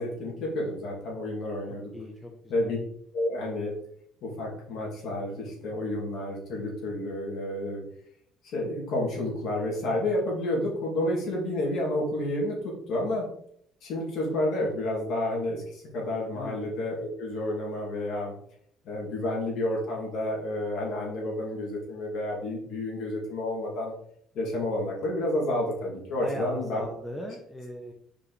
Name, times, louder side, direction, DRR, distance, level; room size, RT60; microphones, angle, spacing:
voice 1, 0.0-1.9 2.5-2.8 3.1-3.7 4.2-7.8 8.5-12.6 12.9-13.3 13.8-18.3 18.8-23.9 24.3-26.8 27.2-27.3, left 1 dB, 55° left, -2 dB, 2.4 m, -30 dB
voice 2, 1.7-2.3 2.6-2.7 16.3-16.6 26.2-27.9, equal, ahead, 1 dB, 0.6 m, -39 dB
6.3 x 5.0 x 3.2 m, 0.66 s
cardioid pair, 170°, 0 cm